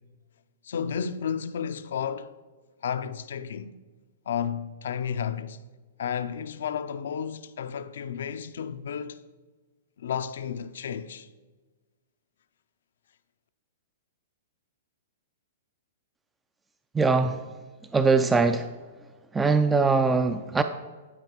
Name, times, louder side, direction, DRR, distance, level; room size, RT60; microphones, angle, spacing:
voice 1, 0.6-2.3 2.8-3.7 4.3-5.6 6.0-9.2 10.0-11.3, left 7 dB, 70° left, 0.4 m, -32 dB
voice 2, 16.9-17.4 17.9-18.7 19.3-20.6, right 4 dB, 10° right, 0.3 m, -22 dB
11.0 x 4.9 x 3.0 m
hypercardioid pair, 120°, 0 cm